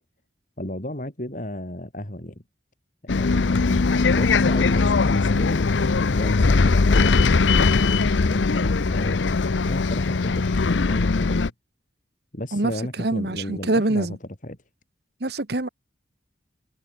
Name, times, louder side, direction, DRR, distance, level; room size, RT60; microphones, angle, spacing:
voice 1, 0.6-2.3 3.0-5.8 6.1-9.2 9.6-11.5 12.3-14.1 14.4-14.6, left 1 dB, 45° left, 3.8 m, -33 dB
Bus, 3.1-11.5, left 4 dB, 80° left, 0.7 m, -20 dB
voice 2, 12.5-14.2 15.2-15.7, right 2 dB, 60° right, 1.3 m, -25 dB
head